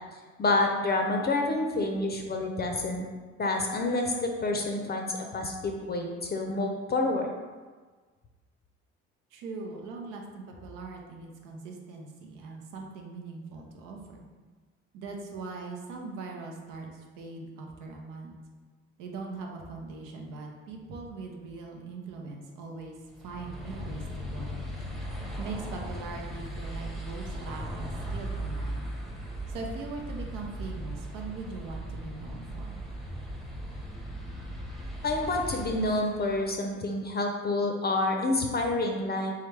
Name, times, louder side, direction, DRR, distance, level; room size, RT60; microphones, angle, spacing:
voice 1, 0.4-3.0 3.4-7.3 35.0-39.3, left 2 dB, 30° left, 2 dB, 0.5 m, -28 dB
voice 2, 9.3-14.2 14.9-18.3 19.0-24.6 25.4-28.9 29.5-32.9, right 3 dB, 80° right, 1 dB, 0.8 m, -41 dB
sound 1, 23.1-36.6, right 1 dB, ahead, 0.7 m, -38 dB
3.5 x 3.3 x 3.2 m, 1.4 s
supercardioid pair, 70°, 31 cm